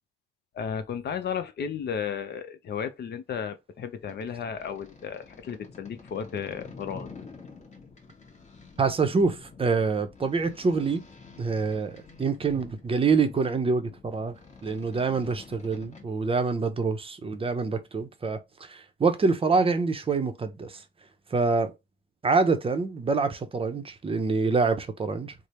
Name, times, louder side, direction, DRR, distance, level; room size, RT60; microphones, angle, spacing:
voice 1, 0.5-7.1, left 7 dB, 55° left, 0.6 m, -34 dB
sound 1, 4.0-16.0, left 4 dB, 35° left, 1.2 m, -49 dB
voice 2, 8.8-11.0 11.4-14.3 14.6-20.8 21.3-21.7 22.2-25.3, right 4 dB, 30° right, 0.6 m, -26 dB
3.2 x 2.0 x 4.2 m
cardioid pair, 90°, 20 cm